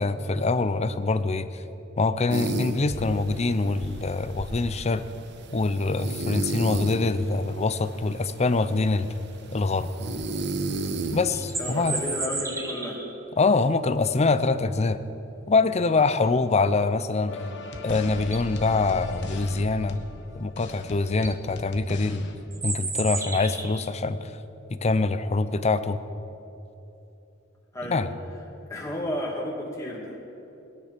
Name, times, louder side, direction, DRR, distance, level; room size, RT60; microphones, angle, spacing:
voice 1, 0.0-1.6 2.0-5.0 5.5-9.1 9.5-9.9 11.1-12.0 13.4-15.0 15.5-17.4 17.8-20.0 20.3-22.3 22.6-24.3 24.7-26.0 27.9-28.1, left 3 dB, 35° left, 13 dB, 0.6 m, -24 dB
sound 1, 2.3-12.2, right 2 dB, 60° right, 1.0 m, -34 dB
sound 2, 11.3-13.1 17.6-17.7 18.2-18.6 20.6-20.7 21.1-21.3 22.5-23.9, right 3 dB, 15° right, 1.1 m, -32 dB
voice 2, 11.6-13.0 27.7-28.0 28.7-30.2, left 1 dB, 15° left, -3 dB, 2.4 m, -32 dB
sound 3, 17.3-22.4, left 2 dB, 65° left, 1.2 m, -38 dB
21.0 x 9.9 x 5.9 m, 2.9 s
head